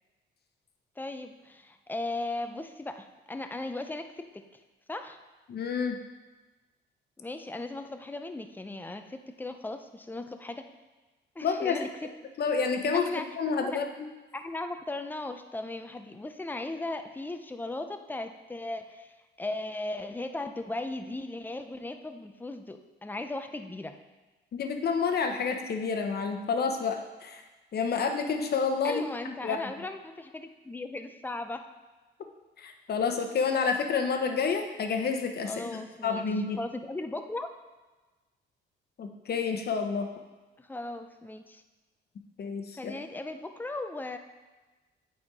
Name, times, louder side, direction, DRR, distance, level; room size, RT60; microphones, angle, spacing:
voice 1, 1.0-4.4 4.9-5.2 7.2-10.7 11.4-11.9 12.9-13.3 13.5-13.8 14.3-24.0 28.8-31.6 35.4-36.3 36.6-37.5 40.6-41.6 42.7-44.2, left 2 dB, 10° left, 7 dB, 0.6 m, -37 dB
voice 2, 5.5-6.0 11.4-11.8 12.4-13.1 13.4-14.1 24.5-27.4 27.7-29.6 32.6-36.6 39.0-40.1 42.4-42.9, left 5 dB, 55° left, 5 dB, 0.9 m, -29 dB
8.7 x 4.3 x 4.8 m, 1.2 s
cardioid pair, 90°, 20 cm